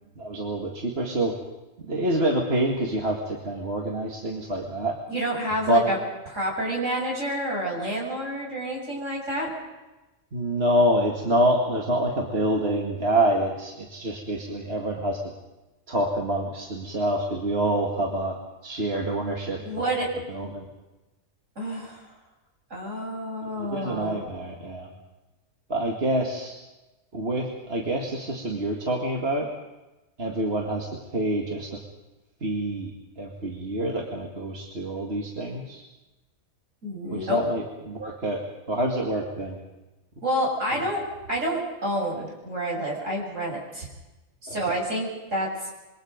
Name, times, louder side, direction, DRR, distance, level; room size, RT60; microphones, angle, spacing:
voice 1, 0.2-1.4 1.8-5.0 5.7-6.0 10.3-15.2 15.9-18.4 18.6-19.6 20.3-20.7 23.6-24.9 25.7-26.5 27.1-29.5 30.2-31.8 32.4-32.9 33.2-35.8 37.1-38.4 38.7-39.6 40.7-40.8 44.5-44.6, right 1 dB, 45° right, 0 dB, 2.4 m, -26 dB
voice 2, 5.1-6.0 6.3-9.5 19.6-20.1 21.6-22.1 22.7-24.2 36.8-37.4 40.2-41.0 41.3-43.9 44.4-45.5, right 1 dB, 60° right, -1 dB, 6.7 m, -29 dB
26.5 x 23.5 x 5.2 m, 1.1 s
omnidirectional pair, 1.5 m